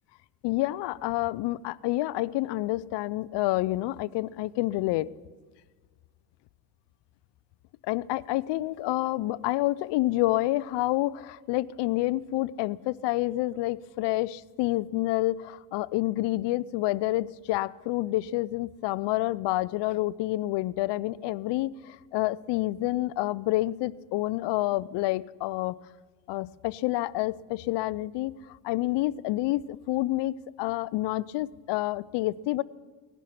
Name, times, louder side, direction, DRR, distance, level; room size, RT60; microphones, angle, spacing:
voice 1, 0.4-5.1 7.8-25.8 26.3-32.6, left 17 dB, 65° left, 21 dB, 0.7 m, -28 dB
18.0 x 11.5 x 6.0 m, 1.4 s
supercardioid pair, 85°, 46 cm